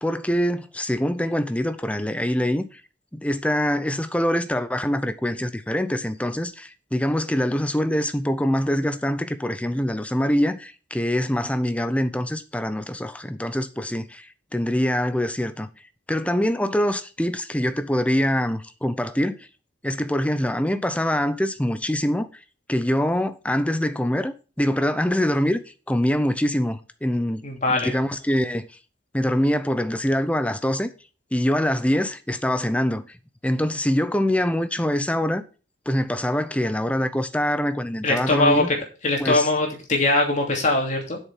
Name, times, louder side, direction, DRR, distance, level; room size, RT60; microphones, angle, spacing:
voice 1, 0.0-2.8 3.1-14.3 14.5-15.7 16.1-19.4 19.8-22.3 22.7-25.6 25.9-27.4 27.7-28.7 29.1-30.9 31.3-33.1 33.4-35.4 35.9-38.7 39.2-39.5, equal, 5° left, 0.7 m, -24 dB
voice 2, 27.4-27.9 38.0-38.6 39.0-41.2, left 2 dB, 45° left, 2.8 m, -21 dB
7.9 x 6.7 x 5.8 m
head